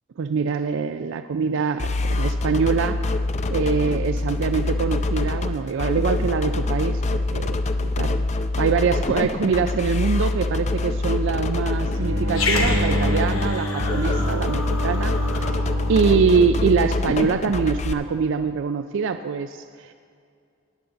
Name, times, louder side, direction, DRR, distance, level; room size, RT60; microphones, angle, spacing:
voice 1, 0.2-3.0 3.5-8.2 8.6-15.6 15.9-19.9, right 5 dB, 65° right, 9 dB, 0.4 m, -24 dB
sound 1, 1.8-17.9, left 2 dB, 35° left, 0.4 m, -25 dB
sound 2, 12.0-17.3, right 1 dB, 80° right, 1.0 m, -29 dB
Growling, 12.3-16.9, left 3 dB, 80° left, 1.2 m, -30 dB
18.5 x 6.9 x 4.0 m, 2.3 s
head